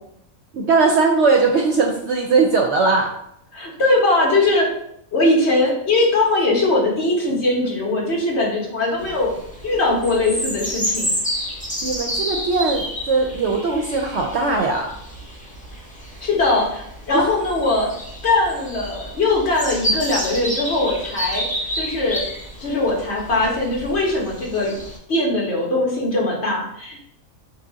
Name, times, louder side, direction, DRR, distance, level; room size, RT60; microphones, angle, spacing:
voice 1, 0.5-3.1 11.8-15.0 17.1-17.3, right 4 dB, 65° right, 2 dB, 0.7 m, -19 dB
voice 2, 3.5-4.7 5.1-9.3 9.6-11.1 16.2-17.9 18.2-21.4 21.7-22.2 22.6-24.7 25.1-27.0, left 2 dB, 50° left, -2 dB, 1.3 m, -20 dB
sound 1, 9.0-25.0, equal, 5° left, 0.7 m, -30 dB
5.6 x 2.3 x 3.9 m, 0.73 s
omnidirectional pair, 1.5 m